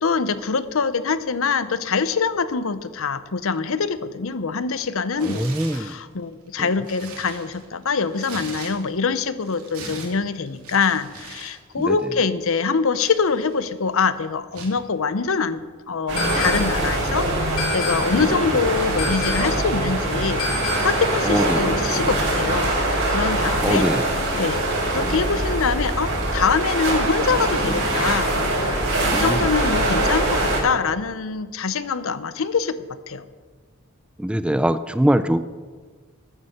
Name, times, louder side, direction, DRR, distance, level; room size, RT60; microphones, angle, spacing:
voice 1, 0.0-15.6 15.9-22.7 23.1-23.8 24.4-24.6 24.9-32.8 33.1-33.2, left 5 dB, 65° left, 14 dB, 0.7 m, -24 dB
Tearing, 5.1-5.9 6.5-9.1 9.4-11.6 11.8-12.0 12.6-13.7 14.5-14.8, right 4 dB, 90° right, 2.7 m, -40 dB
voice 2, 5.2-6.0 6.6-6.7 11.8-12.0 18.1-18.3 21.2-21.9 23.6-24.0 25.0-25.1 29.1-29.5 34.2-35.4, right 1 dB, 5° right, 13 dB, 0.3 m, -23 dB
sound 1, 16.1-30.6, right 1 dB, 60° right, 5.4 m, -23 dB
sound 2, 16.2-16.9 17.6-18.3 19.0-19.7 20.4-21.1, left 3 dB, 85° left, 2.5 m, -29 dB
13.5 x 9.6 x 6.5 m, 1.5 s
head